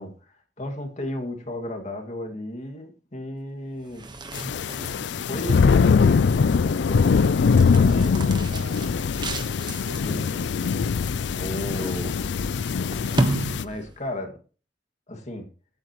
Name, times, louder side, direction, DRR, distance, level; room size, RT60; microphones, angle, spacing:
voice 1, 0.0-4.1 5.3-7.1 7.8-8.2 10.0-10.3 11.3-12.1 13.6-14.3 15.1-15.5, left 1 dB, 40° left, 4 dB, 2.2 m, -34 dB
sound 1, 3.8-14.1, right 2 dB, 25° right, 1.2 m, -34 dB
sound 2, 4.3-13.6, left 5 dB, 80° left, 0.4 m, -22 dB
voice 2, 7.6-8.9 9.8-10.6, equal, 90° right, 4 dB, 2.5 m, -42 dB
16.0 x 8.9 x 3.1 m, 0.37 s
head